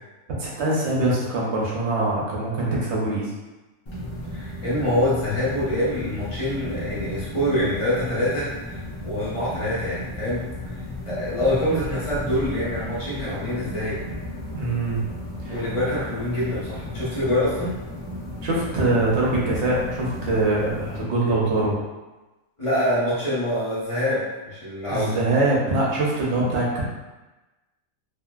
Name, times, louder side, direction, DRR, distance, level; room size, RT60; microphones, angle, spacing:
voice 1, 0.4-3.3 14.5-15.0 15.4-15.6 18.4-21.7 24.9-26.8, right 2 dB, 65° right, -4 dB, 0.9 m, -23 dB
sound 1, 3.9-21.0, left 1 dB, 45° left, 0.4 m, -34 dB
voice 2, 4.3-10.4 11.1-14.0 15.5-17.7 22.6-25.1, left 1 dB, 25° left, -9 dB, 1.0 m, -25 dB
2.7 x 2.4 x 2.3 m, 1.1 s
omnidirectional pair, 1.3 m